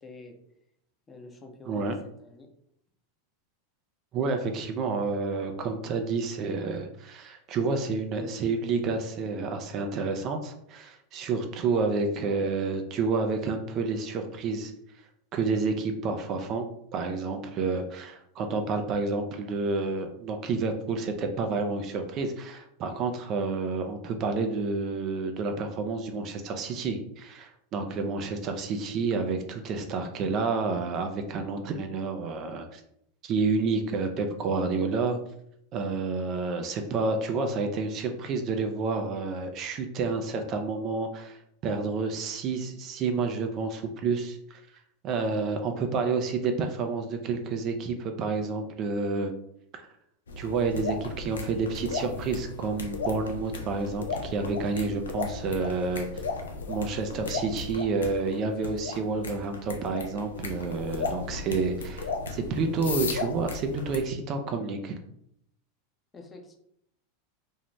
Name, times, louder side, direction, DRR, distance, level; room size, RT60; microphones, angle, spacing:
voice 1, 0.0-0.4 1.1-2.5 66.1-66.6, left 2 dB, 20° left, 3 dB, 0.6 m, -47 dB
voice 2, 4.1-14.7 15.3-32.8 33.2-35.2 35.7-44.6 45.0-49.3 49.7-49.8 50.4-56.1 56.7-65.0, right 4 dB, 45° right, 5 dB, 0.4 m, -29 dB
sound 1, 50.3-64.0, left 3 dB, 85° left, 0.4 m, -35 dB
2.6 x 2.1 x 3.0 m, 0.72 s
hypercardioid pair, 100°, 0 cm